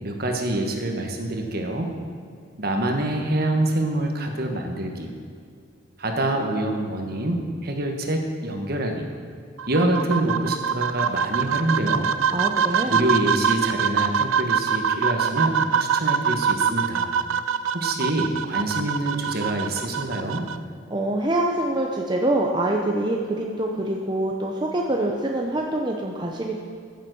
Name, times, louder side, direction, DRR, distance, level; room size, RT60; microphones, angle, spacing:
voice 1, 0.0-1.9 2.6-5.1 6.0-9.1 9.7-12.1 12.9-17.1 17.7-20.4, right 1 dB, 50° right, 3 dB, 1.4 m, -26 dB
sound 1, 9.6-20.6, right 7 dB, 85° right, 0.4 m, -24 dB
voice 2, 12.3-13.0 20.9-26.5, right 1 dB, 20° right, 0 dB, 0.7 m, -25 dB
14.5 x 7.3 x 6.2 m, 2.3 s
head